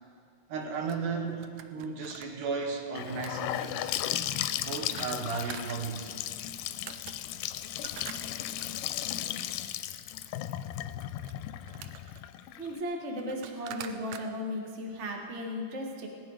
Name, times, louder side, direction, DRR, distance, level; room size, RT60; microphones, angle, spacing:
voice 1, 0.5-4.0 4.6-6.2, right 4 dB, 75° right, 2 dB, 2.9 m, -35 dB
sound 1, 0.6-2.3 3.2-3.4 4.2-5.8 6.6-6.7 6.9-7.2 7.7-8.7 10.2-10.4 10.8-12.2 12.9-13.0 13.2-14.2, right 10 dB, 90° right, 1.5 m, -45 dB
Gurgling / Sink (filling or washing) / Bathtub (filling or washing), 3.0-12.8, left 12 dB, 80° left, 2.1 m, -35 dB
voice 2, 12.6-16.1, left 1 dB, 40° right, 1 dB, 1.0 m, -36 dB
18.5 x 11.0 x 4.9 m, 2.2 s
omnidirectional pair, 3.9 m